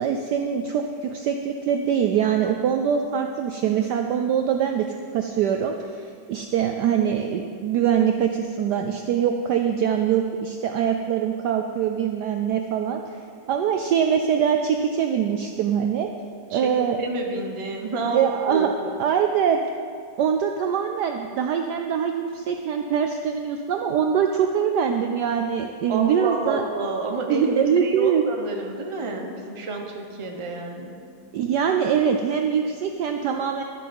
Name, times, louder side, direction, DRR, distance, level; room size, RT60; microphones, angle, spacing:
voice 1, 0.0-4.9 5.1-13.0 13.5-16.1 16.5-17.0 18.1-18.7 19.0-19.6 20.2-26.6 27.3-28.2 31.3-33.6, right 8 dB, 75° right, 5 dB, 1.0 m, -23 dB
voice 2, 17.0-18.2 18.5-18.9 25.9-31.0, right 3 dB, 25° right, 1 dB, 0.7 m, -29 dB
12.5 x 7.6 x 5.3 m, 2.3 s
omnidirectional pair, 2.2 m